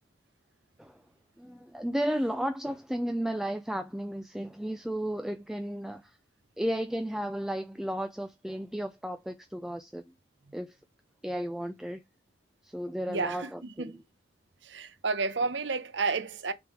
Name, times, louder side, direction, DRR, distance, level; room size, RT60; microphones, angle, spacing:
voice 1, 1.4-6.2 6.6-10.0 10.5-10.8 11.2-12.0 12.6-14.0, equal, 5° right, 0.4 m, -33 dB
voice 2, 13.1-14.0 14.6-16.5, right 4 dB, 70° right, 0.8 m, -31 dB
6.0 x 3.6 x 4.7 m
head